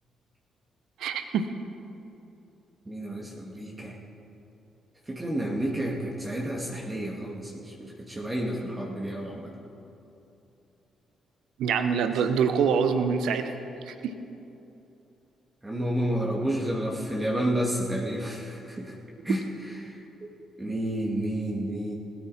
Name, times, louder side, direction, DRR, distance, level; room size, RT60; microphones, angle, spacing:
voice 1, 1.0-1.5 11.6-13.5 14.0-14.1, right 6 dB, 65° right, 10 dB, 0.8 m, -25 dB
voice 2, 2.9-4.0 5.1-9.5 15.6-18.9 19.2-20.0 20.6-22.0, right 1 dB, 20° right, -3 dB, 2.3 m, -30 dB
20.5 x 9.9 x 4.4 m, 2.9 s
figure-of-eight pair, 40°, 0 cm